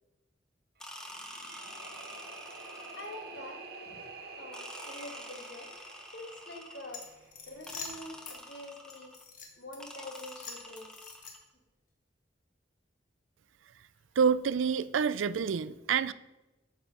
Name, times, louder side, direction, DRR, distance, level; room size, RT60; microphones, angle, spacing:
sound 1, 0.8-3.4 4.5-7.1 7.7-9.2 9.8-11.4, left 1 dB, 5° left, 0.8 m, -48 dB
sound 2, 0.8-7.9, right 3 dB, 55° right, 1.2 m, -48 dB
voice 1, 3.0-3.6 4.4-5.7 6.1-7.1 7.5-9.1 9.6-10.9, left 1 dB, 65° left, 2 dB, 1.8 m, -45 dB
sound 3, 6.9-8.4 8.9-9.8 10.1-11.6, left 5 dB, 45° left, 1.5 m, -45 dB
voice 2, 14.2-16.1, right 6 dB, 90° right, 16 dB, 0.4 m, -27 dB
8.6 x 6.7 x 5.3 m, 1.0 s
head